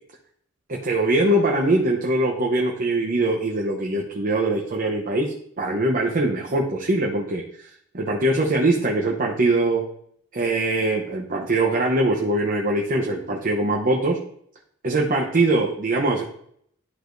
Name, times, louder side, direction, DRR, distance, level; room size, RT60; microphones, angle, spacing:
voice 1, 0.7-7.4 7.9-9.8 10.3-14.2 14.8-16.2, right 2 dB, 40° right, -1 dB, 0.8 m, -22 dB
11.5 x 4.9 x 2.6 m, 0.66 s
head